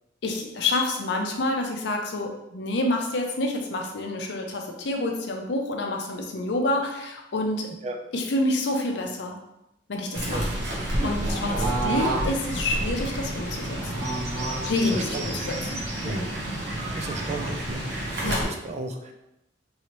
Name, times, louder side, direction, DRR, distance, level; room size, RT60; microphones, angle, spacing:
voice 1, 0.2-7.7 8.1-9.4 9.9-10.5 11.0-14.1 14.6-16.3 18.2-18.4, left 2 dB, 65° left, 2 dB, 0.5 m, -28 dB
Fowl / Bird, 10.1-18.4, right 1 dB, 65° right, 0.9 m, -29 dB
voice 2, 14.8-15.5 16.0-16.2 17.0-19.1, right 2 dB, 35° right, 4 dB, 0.4 m, -34 dB
3.1 x 2.9 x 2.9 m, 0.87 s
head